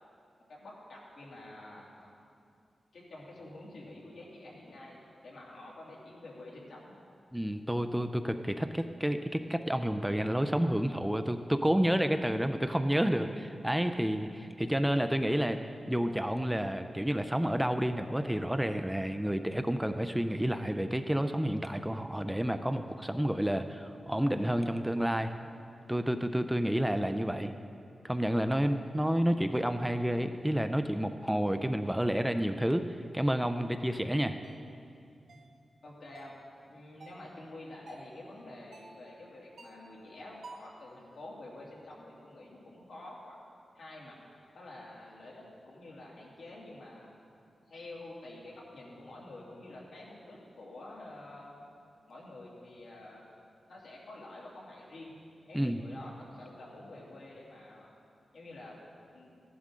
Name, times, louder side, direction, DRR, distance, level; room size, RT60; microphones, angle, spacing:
voice 1, 0.5-2.1 2.9-6.9 35.8-43.4 43.7-44.2 44.5-47.2 47.7-51.5 52.1-53.3 53.7-55.1 55.4-57.9 58.3-58.8 59.1-59.3, left 2 dB, 70° left, -4 dB, 2.6 m, -48 dB
voice 2, 7.3-15.6 15.9-25.3 25.9-27.5 28.0-32.9 33.1-34.4 55.5-55.8, equal, 5° right, 8 dB, 0.3 m, -30 dB
sound 1, 34.4-34.6 35.3-35.5 36.1-36.4 37.0-37.3 37.9-38.2 38.7-39.0 39.6-39.9 40.4-40.8, right 3 dB, 80° right, 1.1 m, -52 dB
15.0 x 11.0 x 3.7 m, 2.5 s
wide cardioid pair, 160°, 0 cm